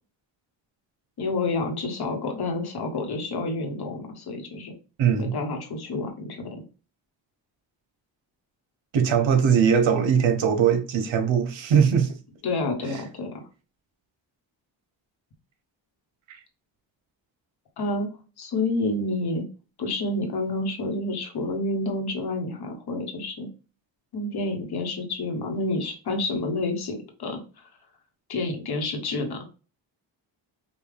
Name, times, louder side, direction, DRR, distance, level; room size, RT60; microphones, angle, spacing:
voice 1, 1.2-4.7 5.2-6.6 12.4-13.5 17.8-18.1 18.4-19.5 19.8-23.5 24.1-27.7 28.3-29.4, left 2 dB, 55° left, 1.1 m, -29 dB
voice 2, 5.0-5.3 8.9-12.1 16.3-16.4, right 7 dB, 85° right, 0.9 m, -21 dB
5.4 x 2.3 x 3.3 m
wide cardioid pair, 150°, 45 cm